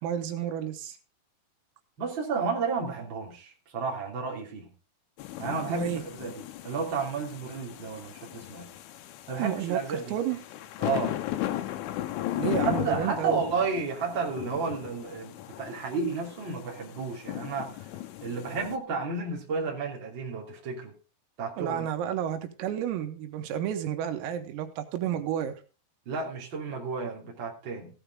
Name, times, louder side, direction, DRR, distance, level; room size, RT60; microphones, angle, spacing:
voice 1, 0.0-1.0 5.7-6.0 9.4-9.8 10.1-10.4 12.4-13.4 21.6-25.6, right 10 dB, 90° right, 4.1 m, -31 dB
voice 2, 2.0-4.7 5.4-8.7 9.3-10.2 10.8-11.2 12.6-17.9 18.2-20.9 21.4-21.9 26.0-27.9, right 4 dB, 30° right, 2.8 m, -32 dB
sound 1, 5.2-18.8, left 14 dB, 80° left, 3.4 m, -36 dB
15.5 x 8.9 x 3.7 m
omnidirectional pair, 5.9 m